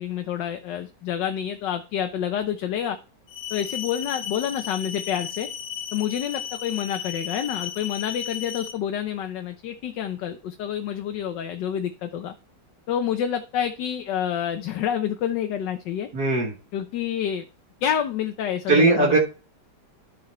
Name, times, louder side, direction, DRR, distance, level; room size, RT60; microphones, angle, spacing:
voice 1, 0.0-3.0 3.5-5.5 5.9-12.3 12.9-16.1 16.7-17.4 17.8-19.2, left 9 dB, 85° left, 7 dB, 1.5 m, -28 dB
sound 1, 3.3-8.7, left 9 dB, 45° left, 1.6 m, -34 dB
voice 2, 16.1-16.5 18.7-19.2, right 3 dB, 60° right, -1 dB, 2.0 m, -19 dB
12.5 x 4.5 x 4.4 m, 0.34 s
omnidirectional pair, 1.9 m